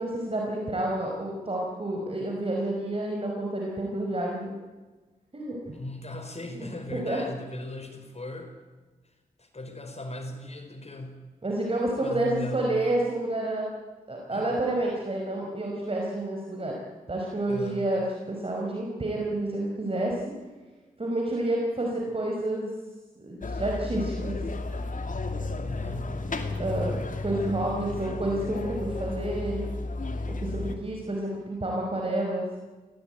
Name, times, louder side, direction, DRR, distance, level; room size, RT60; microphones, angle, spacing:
voice 1, 0.0-4.5 5.3-5.7 6.6-7.2 11.4-13.7 14.1-16.7 17.1-20.2 21.0-22.7 23.2-24.4 26.6-27.0 27.2-29.6 30.3-32.6, right 1 dB, 40° right, -1 dB, 5.2 m, -29 dB
voice 2, 5.7-8.5 9.4-11.2 12.0-12.7 14.3-14.6 17.5-17.8 25.6-26.1, left 1 dB, 45° left, 6 dB, 4.9 m, -38 dB
sound 1, 23.4-30.7, left 2 dB, 60° left, 2.6 m, -33 dB
23.5 x 17.0 x 9.2 m, 1.3 s
cardioid pair, 60°, 15 cm